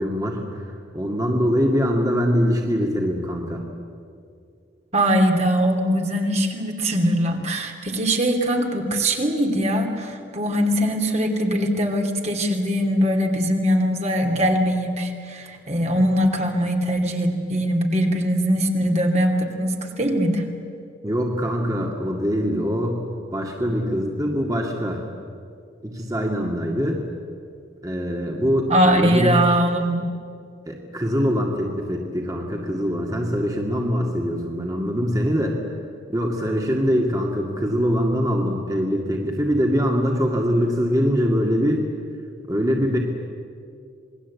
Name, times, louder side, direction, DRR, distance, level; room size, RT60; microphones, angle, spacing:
voice 1, 0.0-3.6 21.0-23.0 23.3-25.0 25.8-27.0 27.8-28.7 29.0-29.4 30.7-35.6 36.1-41.9 42.5-43.0, equal, 20° right, 0 dB, 2.2 m, -23 dB
voice 2, 4.9-20.5 28.7-30.0, equal, 35° right, 2 dB, 2.6 m, -21 dB
27.5 x 20.5 x 8.5 m, 2.3 s
head